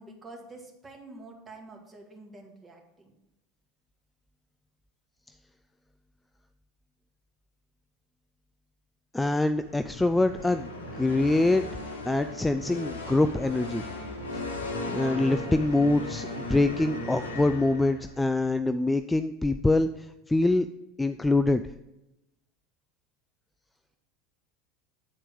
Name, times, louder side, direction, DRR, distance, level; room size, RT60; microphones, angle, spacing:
voice 1, 0.0-3.1, right 2 dB, 20° right, 1 dB, 1.9 m, -47 dB
voice 2, 9.1-11.6 12.1-13.8 14.9-20.7 21.0-21.6, left 2 dB, 10° left, 9 dB, 0.3 m, -25 dB
sound 1, 9.6-18.3, left 2 dB, 80° left, 1.1 m, -37 dB
8.6 x 4.4 x 5.2 m, 0.92 s
hypercardioid pair, 80°, 0 cm